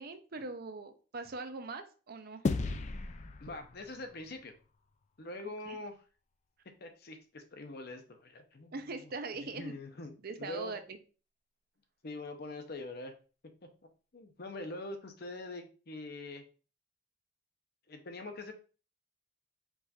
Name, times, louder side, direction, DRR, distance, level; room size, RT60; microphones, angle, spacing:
voice 1, 0.0-2.4 5.7-5.8 8.7-9.7 10.2-11.0, right 3 dB, 50° right, 8 dB, 0.6 m, -41 dB
sound 1, 2.4-5.1, left 3 dB, 40° left, 0.4 m, -36 dB
voice 2, 3.4-4.5 5.2-6.0 6.8-8.8 9.5-10.8 12.0-13.1 14.1-16.4 17.9-18.5, left 2 dB, 55° left, 6 dB, 0.7 m, -43 dB
4.6 x 2.5 x 4.1 m, 0.36 s
head